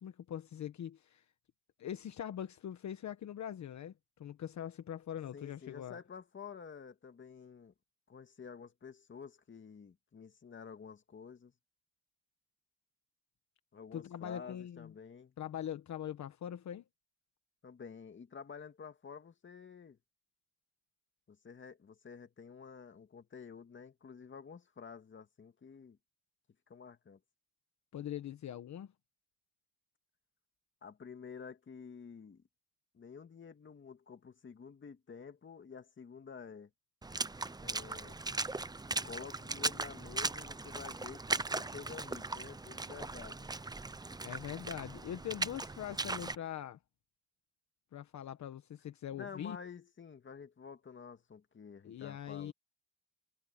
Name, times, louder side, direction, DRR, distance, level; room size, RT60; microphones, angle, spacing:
voice 1, 0.0-1.2 1.8-3.9 4.2-6.0 13.9-14.9 15.4-16.8 27.9-28.9 44.2-46.8 47.9-49.6 51.8-52.5, left 10 dB, 60° left, 1.2 m, -42 dB
voice 2, 5.3-7.7 8.1-11.5 13.7-15.3 17.6-20.0 21.3-26.0 26.7-27.2 30.8-32.4 32.9-36.7 37.6-38.2 38.9-43.5 49.1-52.5, left 6 dB, 35° left, 2.2 m, -50 dB
Water / Splash splatter, 37.0-46.4, right 3 dB, 10° right, 0.8 m, -38 dB
cardioid pair, 100°, 32 cm